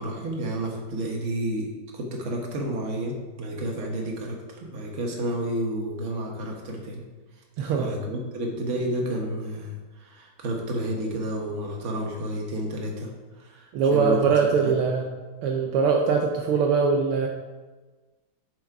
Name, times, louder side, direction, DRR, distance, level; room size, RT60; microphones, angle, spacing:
voice 1, 0.0-7.0 7.8-13.1 13.4-14.3 14.6-14.7, right 1 dB, 40° right, 0 dB, 1.3 m, -31 dB
voice 2, 7.6-7.9 13.7-15.1 15.4-17.3, right 5 dB, 80° right, 0 dB, 1.6 m, -22 dB
7.1 x 5.1 x 4.7 m, 1.3 s
omnidirectional pair, 2.4 m